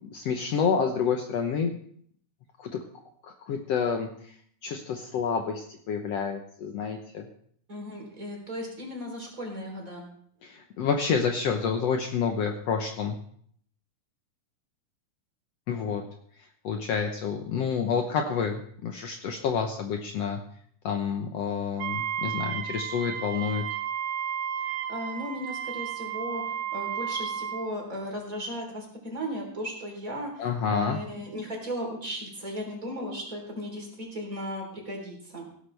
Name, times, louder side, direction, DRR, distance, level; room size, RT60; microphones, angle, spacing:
voice 1, 0.0-1.8 2.6-2.8 3.2-4.3 4.6-7.3 10.4-13.2 15.7-16.0 16.6-20.4 20.8-23.6 30.4-31.0, left 6 dB, 85° left, 3 dB, 1.4 m, -29 dB
voice 2, 7.7-10.1 24.9-26.4 26.7-35.4, equal, 20° right, -1 dB, 3.7 m, -36 dB
Wind instrument woodwind instrument, 21.8-27.7, right 9 dB, 75° right, 2.4 m, -33 dB
16.5 x 12.5 x 3.4 m, 0.62 s
omnidirectional pair, 4.2 m